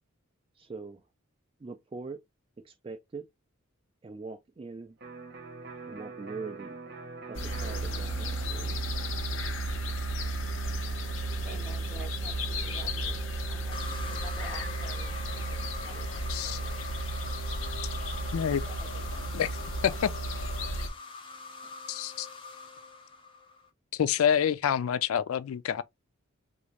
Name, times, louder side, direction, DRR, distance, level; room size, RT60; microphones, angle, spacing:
voice 1, 0.6-1.0 1.6-2.2 2.6-3.3 4.0-5.0 5.8-6.8 7.3-8.8, right 4 dB, 25° right, 0.3 m, -42 dB
Electric guitar, 5.0-12.7, right 3 dB, 50° right, 1.0 m, -47 dB
sound 1, 7.3-20.9, right 1 dB, 65° left, 0.8 m, -33 dB
voice 2, 11.4-16.8 17.4-17.8 18.6-19.3 19.8-20.0 21.4-21.7, right 2 dB, 5° right, 1.2 m, -50 dB
sound 2, 13.7-23.7, left 4 dB, 25° left, 0.8 m, -44 dB
voice 3, 21.9-22.3 23.9-25.8, left 8 dB, 85° left, 0.3 m, -27 dB
3.5 x 2.6 x 3.1 m
head